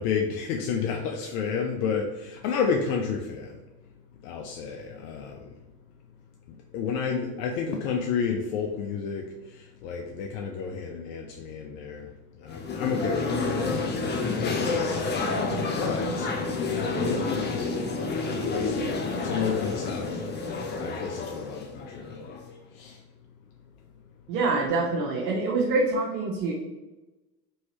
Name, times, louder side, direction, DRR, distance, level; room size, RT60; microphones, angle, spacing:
voice 1, 0.0-3.6 4.2-5.6 6.7-12.1 12.4-13.8 14.4-15.2 15.8-16.3 16.9-17.9 18.3-20.2 20.5-22.4 22.7-23.0, left 6 dB, 70° left, 1 dB, 0.6 m, -31 dB
sound 1, 12.5-22.5, left 3 dB, 25° left, 0.5 m, -29 dB
voice 2, 24.3-26.5, right 3 dB, 70° right, -3 dB, 0.8 m, -25 dB
3.0 x 2.7 x 2.9 m, 1.1 s
hypercardioid pair, 80°, 48 cm